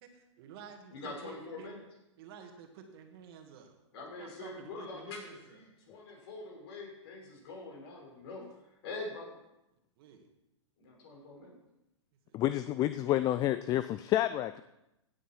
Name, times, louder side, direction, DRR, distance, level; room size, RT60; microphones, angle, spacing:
voice 1, 0.0-1.7 2.2-3.8 4.2-5.6 10.0-10.3 12.3-12.4 12.7-12.9, right 7 dB, 50° right, 4 dB, 2.3 m, -52 dB
voice 2, 0.9-1.8 3.9-5.2 5.5-8.4 8.8-9.3 10.8-11.5, left 3 dB, 55° left, 0 dB, 5.5 m, -44 dB
voice 3, 12.3-14.6, left 13 dB, 25° left, 13 dB, 0.4 m, -29 dB
16.5 x 8.8 x 4.6 m, 0.89 s
hypercardioid pair, 120°, 15 cm